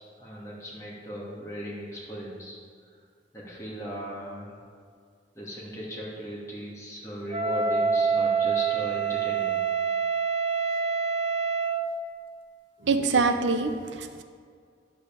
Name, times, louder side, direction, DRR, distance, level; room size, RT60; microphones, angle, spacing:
voice 1, 0.2-2.6 3.3-4.6 5.3-9.6, right 1 dB, 15° left, -6 dB, 2.5 m, -37 dB
Wind instrument woodwind instrument, 7.3-11.9, right 5 dB, 30° right, 0.6 m, -26 dB
voice 2, 12.8-14.2, right 4 dB, 80° right, 8 dB, 0.6 m, -25 dB
10.0 x 5.6 x 6.9 m, 2.1 s
head